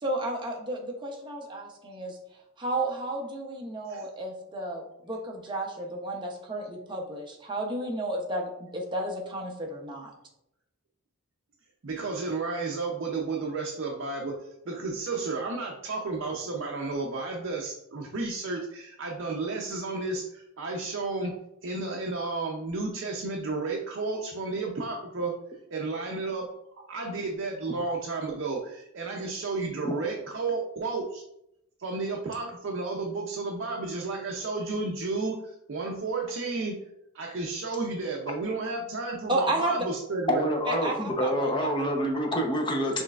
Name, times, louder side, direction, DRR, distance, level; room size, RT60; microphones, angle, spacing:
voice 1, 0.0-2.2 2.6-10.1 39.3-39.9 40.7-41.5, right 1 dB, 20° right, 1 dB, 0.7 m, -32 dB
voice 2, 11.8-21.3 21.6-25.3 25.7-26.5 26.9-31.2 31.8-36.8 37.1-40.4, right 3 dB, 60° right, 0 dB, 0.5 m, -32 dB
voice 3, 40.3-43.0, equal, 20° left, 1 dB, 0.7 m, -27 dB
6.1 x 3.2 x 2.4 m, 0.81 s
head